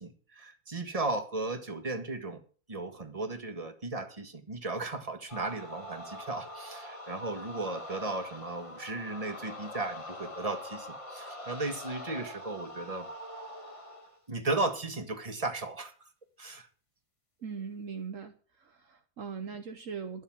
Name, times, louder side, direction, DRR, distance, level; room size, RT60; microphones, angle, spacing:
voice 1, 0.0-2.4 2.7-13.1 14.3-15.9 16.4-16.7, right 2 dB, 25° right, 5 dB, 1.9 m, -35 dB
sound 1, 5.3-14.2, left 1 dB, 20° left, 1.6 m, -44 dB
voice 2, 17.4-20.2, right 6 dB, 60° right, 7 dB, 1.3 m, -40 dB
13.0 x 7.3 x 7.3 m, 0.39 s
omnidirectional pair, 1.6 m